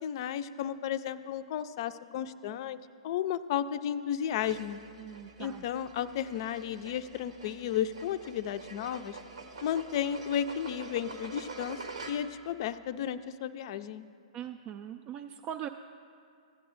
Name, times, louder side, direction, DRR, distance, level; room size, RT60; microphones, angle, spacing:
voice 1, 0.0-2.8 3.0-4.8 5.4-9.2 9.6-11.8 12.1-14.0, left 9 dB, 50° left, 12 dB, 0.4 m, -33 dB
sound 1, 4.4-12.5, right 4 dB, 80° right, 1.0 m, -46 dB
voice 2, 5.0-5.6 14.3-15.7, right 10 dB, 30° right, 6 dB, 0.3 m, -41 dB
16.0 x 9.3 x 2.5 m, 2.4 s
hypercardioid pair, 120°, 3 cm